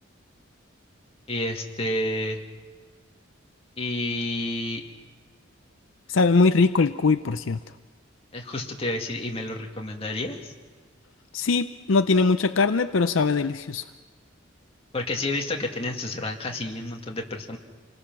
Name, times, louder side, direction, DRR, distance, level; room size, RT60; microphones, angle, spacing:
voice 1, 1.3-2.4 3.8-4.8 8.3-10.5 14.9-17.6, left 1 dB, 30° left, 1 dB, 2.0 m, -30 dB
voice 2, 6.1-7.6 11.3-13.8, left 4 dB, 70° left, 10 dB, 0.6 m, -21 dB
28.0 x 20.0 x 6.1 m, 1.4 s
head